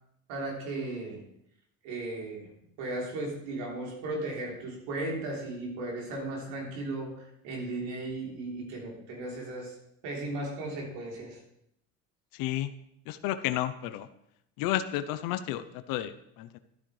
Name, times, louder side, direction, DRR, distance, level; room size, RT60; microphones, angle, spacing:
voice 1, 0.3-1.2 1.8-2.5 2.8-9.8 10.0-11.4, right 2 dB, 90° right, -1 dB, 3.5 m, -36 dB
voice 2, 12.3-12.7 13.1-14.1 14.6-16.6, left 13 dB, 75° left, 11 dB, 0.7 m, -32 dB
12.5 x 9.8 x 3.3 m, 0.74 s
cardioid pair, 110°, 35 cm